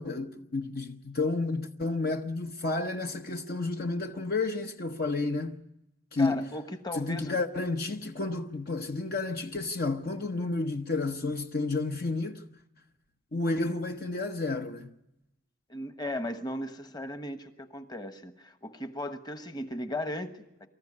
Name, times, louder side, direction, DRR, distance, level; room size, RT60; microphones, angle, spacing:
voice 1, 0.0-5.6 6.1-6.5 6.9-12.5 13.3-14.9, left 3 dB, 50° left, 0.9 m, -31 dB
voice 2, 6.2-7.4 15.7-20.7, left 1 dB, 20° left, 1.2 m, -37 dB
24.5 x 14.5 x 9.7 m
head